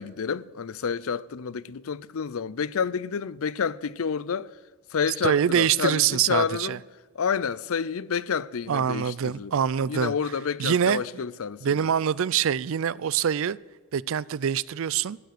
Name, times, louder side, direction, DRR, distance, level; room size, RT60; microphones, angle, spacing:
voice 1, 0.0-4.5 4.9-6.8 7.2-9.6 9.8-11.8, left 6 dB, 65° left, 0.5 m, -29 dB
voice 2, 5.2-6.8 8.7-10.1 10.6-11.0 11.6-13.6 13.9-15.2, right 8 dB, 60° right, 0.4 m, -24 dB
15.5 x 9.2 x 7.7 m
head